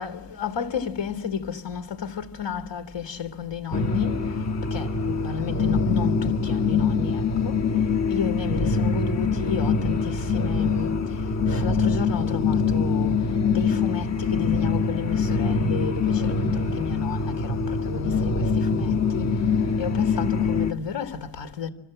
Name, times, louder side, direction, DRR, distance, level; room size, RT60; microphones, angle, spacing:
voice 1, 0.0-4.2 4.7-7.5 8.1-11.0 11.5-13.1 13.5-19.3 19.8-21.7, left 6 dB, 60° left, 3.5 m, -32 dB
sound 1, 3.7-20.7, left 4 dB, 35° left, 1.6 m, -24 dB
28.5 x 25.5 x 7.7 m
cardioid pair, 70°, 48 cm